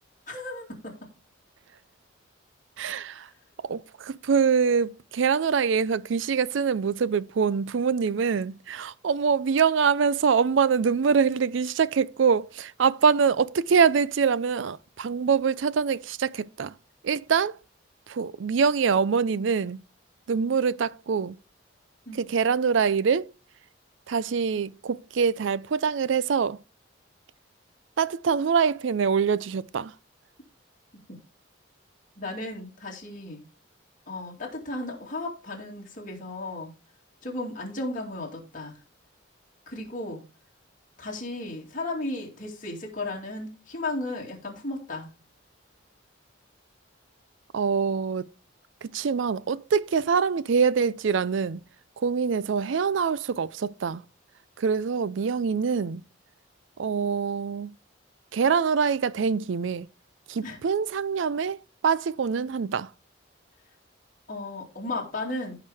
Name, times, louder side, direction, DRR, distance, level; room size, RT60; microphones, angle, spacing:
voice 1, 0.3-0.9 22.1-22.2 32.2-33.4 34.1-36.7 37.2-38.8 39.7-40.2 41.0-45.1 60.4-60.6 64.3-65.6, left 2 dB, 40° left, 2.4 m, -34 dB
voice 2, 2.8-3.3 3.7-16.7 17.0-17.5 18.1-19.8 20.3-21.4 22.1-23.3 24.1-26.6 28.0-29.9 47.5-48.3 48.8-51.6 52.0-54.0 54.6-56.0 56.8-57.7 58.3-59.9 60.3-61.6 61.8-62.9, right 6 dB, 70° right, 0.4 m, -24 dB
15.0 x 5.0 x 3.4 m
head